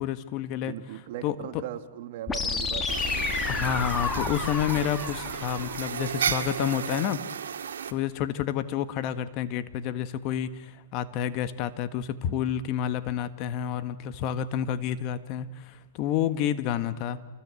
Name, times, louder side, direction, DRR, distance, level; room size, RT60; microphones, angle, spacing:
voice 1, 0.0-0.7 1.2-1.3 3.4-7.2 7.9-17.2, left 10 dB, 35° left, 1.5 m, -29 dB
voice 2, 0.6-3.3, right 12 dB, 55° right, 1.7 m, -39 dB
sound 1, 2.3-6.3, left 4 dB, 15° left, 2.1 m, -31 dB
sound 2, 2.9-7.9, right 7 dB, 85° right, 1.9 m, -33 dB
28.5 x 20.0 x 8.4 m
hypercardioid pair, 140°, 0 cm